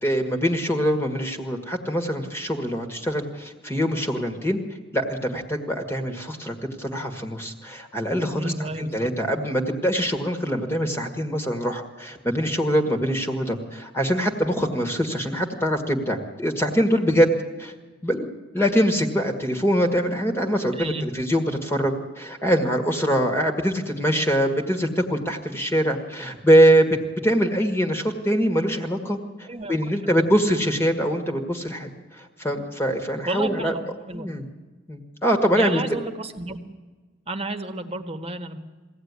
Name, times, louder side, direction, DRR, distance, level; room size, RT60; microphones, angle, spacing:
voice 1, 0.0-4.6 4.9-17.3 17.6-17.7 18.0-18.3 18.5-27.0 27.2-33.7 34.1-34.4 34.9-35.8, equal, 15° left, 4 dB, 1.7 m, -23 dB
voice 2, 8.3-9.1 20.7-21.1 29.5-29.7 33.2-33.8 34.1-34.3 35.6-36.6 37.3-38.6, right 2 dB, 30° right, 7 dB, 1.5 m, -31 dB
22.5 x 16.0 x 9.6 m, 1.3 s
head